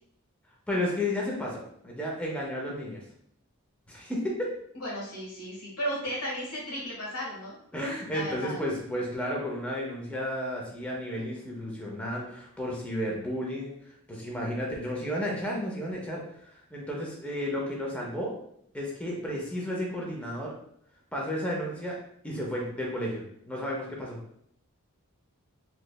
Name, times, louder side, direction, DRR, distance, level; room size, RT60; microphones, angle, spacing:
voice 1, 0.7-1.6 1.8-3.0 3.9-4.5 7.7-13.7 14.1-18.4 18.7-20.5 21.1-21.9 22.2-24.2, left 1 dB, 5° left, -2 dB, 0.5 m, -32 dB
voice 2, 4.7-7.6 8.1-8.6, equal, 90° left, -4 dB, 1.4 m, -34 dB
3.1 x 3.0 x 2.3 m, 0.69 s
head